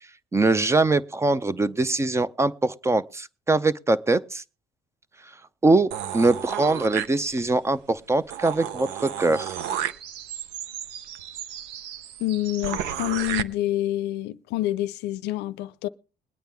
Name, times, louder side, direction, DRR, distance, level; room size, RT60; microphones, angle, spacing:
voice 1, 0.3-4.4 5.6-9.5, right 2 dB, 15° right, 0.5 m, -22 dB
sound 1, 5.9-7.6 8.0-8.1 8.3-13.4, right 10 dB, 90° right, 0.7 m, -33 dB
voice 2, 12.2-15.9, left 15 dB, 85° left, 0.5 m, -27 dB
21.0 x 9.1 x 3.5 m
cardioid pair, 110°, 17 cm